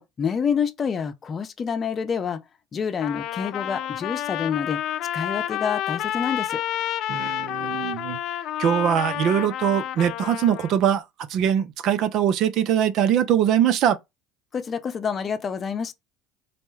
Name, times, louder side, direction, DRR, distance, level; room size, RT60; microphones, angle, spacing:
voice 1, 0.0-2.4 2.7-4.8 5.1-6.6 14.5-15.9, left 6 dB, 40° left, 0.7 m, -27 dB
Trumpet, 3.0-10.7, left 12 dB, 65° left, 0.4 m, -29 dB
voice 2, 7.1-8.2 8.6-14.0, right 9 dB, 60° right, 0.5 m, -22 dB
4.1 x 2.2 x 3.2 m
hypercardioid pair, 75°, 0 cm